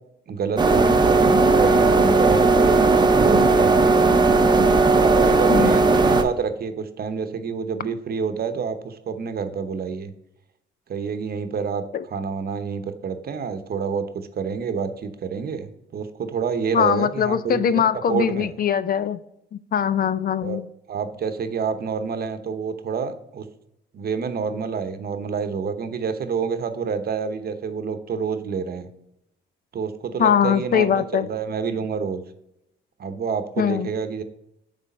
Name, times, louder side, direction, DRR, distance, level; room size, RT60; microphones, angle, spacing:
voice 1, 0.3-4.0 4.9-10.1 10.9-11.8 12.1-18.5 20.4-20.6 20.9-23.4 23.9-28.9 29.7-32.2 33.0-34.2, right 6 dB, 50° right, 0.9 m, -28 dB
sound 1, 0.6-6.2, right 3 dB, 20° right, 0.8 m, -16 dB
voice 2, 5.5-5.8 11.9-12.0 16.7-19.2 19.5-20.7 30.2-31.3 33.6-33.9, left 8 dB, 50° left, 0.4 m, -21 dB
8.2 x 3.4 x 5.3 m
cardioid pair, 90°, 20 cm